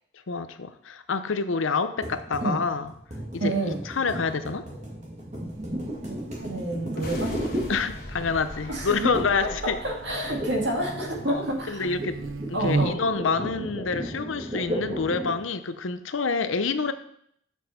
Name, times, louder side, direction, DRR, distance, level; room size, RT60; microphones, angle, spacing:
voice 1, 0.3-2.9 3.3-4.7 7.7-9.8 11.3-12.2 12.5-16.9, left 4 dB, 90° left, 11 dB, 0.7 m, -27 dB
sound 1, 2.0-8.3 9.1-9.5 9.8-15.5, equal, 35° right, 2.0 m, -35 dB
voice 2, 3.4-3.8 6.1-7.4 8.7-9.1 9.4-11.9 12.5-13.0, right 1 dB, 65° right, 0 dB, 2.1 m, -29 dB
Buzz, 5.4-13.2, right 3 dB, 90° right, 0.7 m, -37 dB
sound 2, 6.8-11.4, left 1 dB, 50° left, 1.6 m, -40 dB
7.3 x 6.1 x 5.7 m, 0.69 s
head